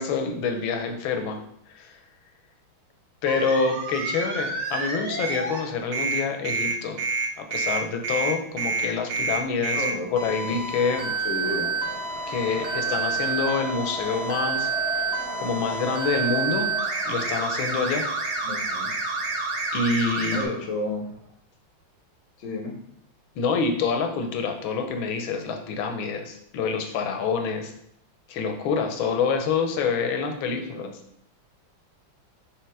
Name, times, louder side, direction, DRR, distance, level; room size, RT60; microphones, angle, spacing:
voice 1, 0.0-1.4 1.7-1.9 3.2-7.0 7.4-9.8 10.2-11.1 12.3-15.1 15.4-16.7 17.1-18.1 19.7-20.5 23.4-27.7 28.3-30.9, left 5 dB, 75° left, 5 dB, 1.6 m, -27 dB
sound 1, 3.3-5.6 5.9-20.4, right 3 dB, 55° right, 1.6 m, -28 dB
Race car auto racing, 8.7-21.3, right 3 dB, 85° right, 2.0 m, -41 dB
voice 2, 9.7-10.6 11.2-11.8 18.4-18.9 20.3-21.1 22.4-22.8 30.6-30.9, left 2 dB, 50° left, 2 dB, 1.1 m, -32 dB
sound 2, 10.5-16.2, right 2 dB, 35° right, 1.1 m, -44 dB
6.5 x 3.3 x 4.7 m, 0.72 s
omnidirectional pair, 2.2 m